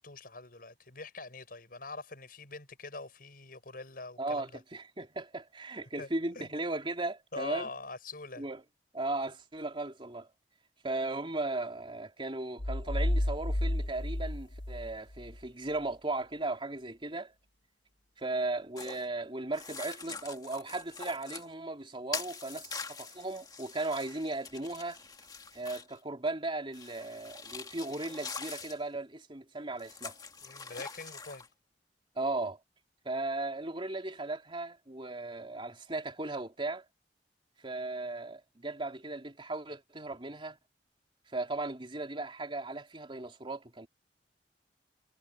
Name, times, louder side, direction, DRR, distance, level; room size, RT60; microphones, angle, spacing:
voice 1, 0.0-4.6 6.0-6.1 6.4-6.5 7.3-8.5 30.4-31.5, left 3 dB, 55° left, 6.9 m, -44 dB
voice 2, 4.2-7.7 8.4-8.6 8.9-10.3 10.8-17.3 18.2-25.0 25.5-30.1 32.1-32.6 33.0-36.8 37.6-40.6 41.3-43.9, right 2 dB, 30° right, 3.2 m, -36 dB
sound 1, 12.6-15.4, left 1 dB, 80° left, 1.5 m, -31 dB
sound 2, 18.8-19.0 19.5-21.5 22.1-26.0 26.7-28.8 29.8-31.5, left 5 dB, 25° left, 1.8 m, -44 dB
head